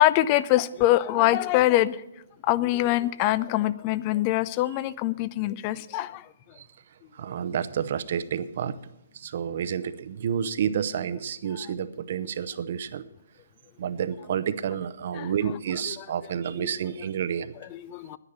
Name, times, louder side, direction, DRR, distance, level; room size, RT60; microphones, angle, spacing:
voice 1, 0.0-2.0 2.4-6.3 15.2-15.3 15.9-16.0 16.6-16.7 17.7-18.2, left 15 dB, 30° left, 18 dB, 0.5 m, -23 dB
voice 2, 7.1-8.8 9.1-13.0 13.8-17.5, right 8 dB, 55° right, 14 dB, 0.7 m, -30 dB
10.0 x 9.8 x 7.3 m, 0.90 s
hypercardioid pair, 145°, 0 cm